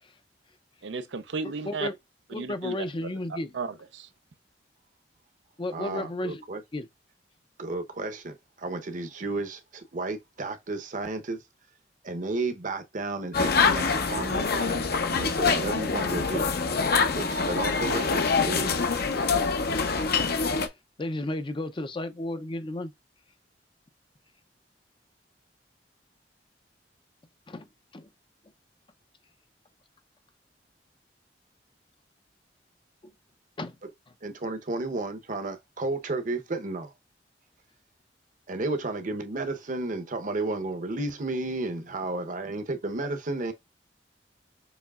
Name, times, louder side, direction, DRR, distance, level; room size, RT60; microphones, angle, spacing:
voice 1, 0.8-1.9 2.4-2.7 3.3-4.1, right 4 dB, 90° right, 0.6 m, -34 dB
voice 2, 2.3-3.5 5.6-6.4 6.7-6.9 21.0-22.9 27.5-27.7 27.9-28.1 33.6-33.8, left 1 dB, 30° left, 0.5 m, -32 dB
voice 3, 5.7-6.6 7.6-11.4 12.0-14.9 15.1-16.4 17.1-18.7 34.2-36.9 38.5-43.5, right 2 dB, 45° right, 0.8 m, -32 dB
sound 1, 13.3-20.7, left 4 dB, 60° left, 0.8 m, -25 dB
7.0 x 3.1 x 2.3 m
head